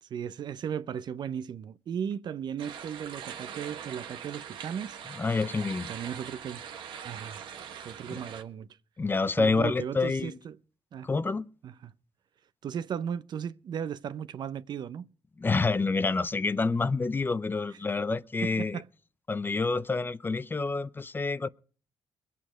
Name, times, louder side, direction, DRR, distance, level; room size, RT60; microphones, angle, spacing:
voice 1, 0.0-5.0 5.9-6.6 7.0-7.5 7.8-8.7 9.4-10.6 10.9-11.1 11.6-11.9 12.6-15.1 18.4-18.9, right 8 dB, 65° right, 0.7 m, -36 dB
sound 1, 2.6-8.4, right 8 dB, 85° right, 1.4 m, -42 dB
voice 2, 5.2-5.9 8.1-8.2 9.0-10.4 11.0-11.5 15.4-18.8 19.3-21.5, left 4 dB, 25° left, 0.6 m, -28 dB
21.5 x 8.5 x 5.0 m
cardioid pair, 85°, 8 cm